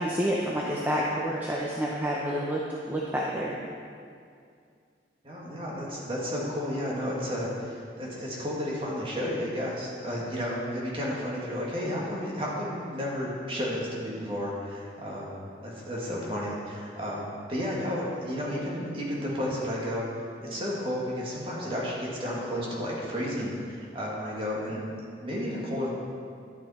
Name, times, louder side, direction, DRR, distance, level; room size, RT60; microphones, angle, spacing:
voice 1, 0.0-2.6 2.9-3.6, equal, 10° right, -4 dB, 0.7 m, -28 dB
voice 2, 5.2-20.0 20.4-24.9 25.2-25.9, equal, 30° right, -5 dB, 2.0 m, -32 dB
11.0 x 8.8 x 4.3 m, 2.3 s
head